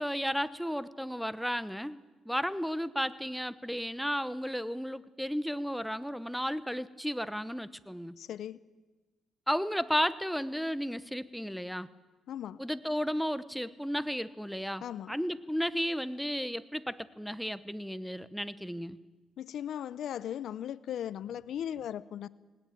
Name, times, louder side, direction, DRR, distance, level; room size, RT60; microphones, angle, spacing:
voice 1, 0.0-2.0 2.3-8.2 9.5-11.9 12.6-19.0, equal, ahead, 14 dB, 0.9 m, -33 dB
voice 2, 8.2-8.6 12.3-12.6 14.8-15.2 19.4-22.3, left 10 dB, 70° left, 18 dB, 0.7 m, -37 dB
19.5 x 19.0 x 9.2 m, 1.2 s
cardioid pair, 90°, 0 cm